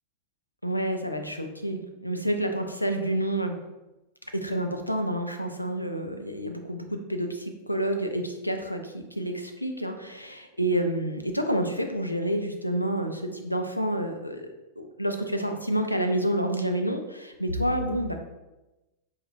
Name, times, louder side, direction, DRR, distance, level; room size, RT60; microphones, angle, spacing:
voice 1, 0.6-3.5 4.3-14.5 14.8-18.1, right 1 dB, 90° left, 5 dB, 0.3 m, -29 dB
4.1 x 2.3 x 2.6 m, 1.0 s
figure-of-eight pair, 90°, 0 cm